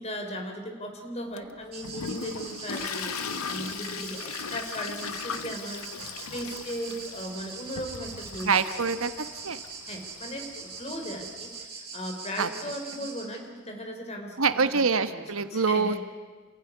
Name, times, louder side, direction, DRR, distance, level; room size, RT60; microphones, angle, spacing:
voice 1, 0.0-8.5 8.8-8.9 9.9-14.6 15.1-16.0, equal, 30° left, 4 dB, 3.6 m, -37 dB
Toilet flush, 1.4-11.6, left 6 dB, 85° left, 0.9 m, -39 dB
sound 1, 1.7-13.2, right 5 dB, 45° right, 5.9 m, -42 dB
voice 2, 8.4-9.6 12.4-12.5 14.4-16.0, right 5 dB, 70° right, 11 dB, 1.2 m, -25 dB
27.5 x 16.0 x 9.7 m, 1.5 s
head